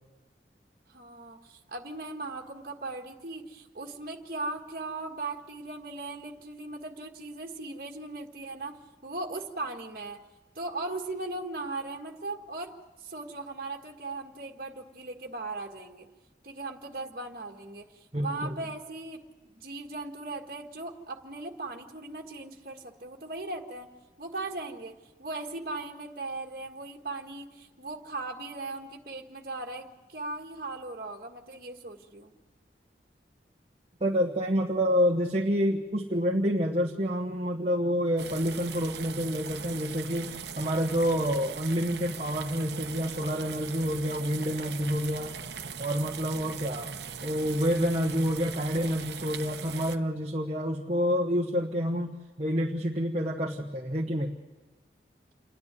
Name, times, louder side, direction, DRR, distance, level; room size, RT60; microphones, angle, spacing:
voice 1, 0.9-10.2 10.5-16.1 16.4-23.9 24.2-32.3 46.3-46.6, right 2 dB, 55° right, 2 dB, 1.7 m, -38 dB
voice 2, 18.1-18.5 34.0-45.3 45.8-47.0 47.2-54.3, equal, 35° right, 1 dB, 1.1 m, -28 dB
sound 1, 38.2-50.0, right 6 dB, 80° right, 0.9 m, -40 dB
28.0 x 10.5 x 9.5 m, 1.2 s
head